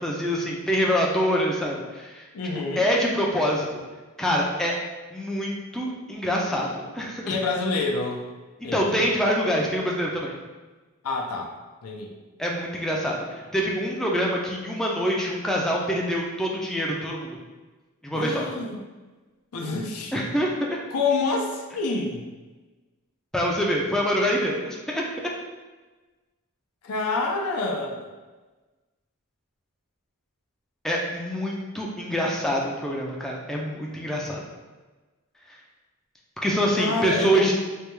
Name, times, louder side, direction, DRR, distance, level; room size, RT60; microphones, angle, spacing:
voice 1, 0.0-2.2 2.8-3.7 4.2-4.7 5.1-7.3 8.7-10.3 12.4-17.4 18.0-18.5 20.1-20.8 23.3-25.0 30.8-34.4 36.4-37.5, equal, ahead, -3 dB, 0.3 m, -25 dB
voice 2, 2.3-2.8 7.3-8.3 8.6-9.0 11.0-11.5 11.8-12.1 18.1-18.8 19.5-20.1 20.9-22.3 26.8-28.1 36.7-37.5, left 3 dB, 75° left, 0 dB, 0.5 m, -27 dB
3.2 x 2.2 x 3.0 m, 1.2 s
head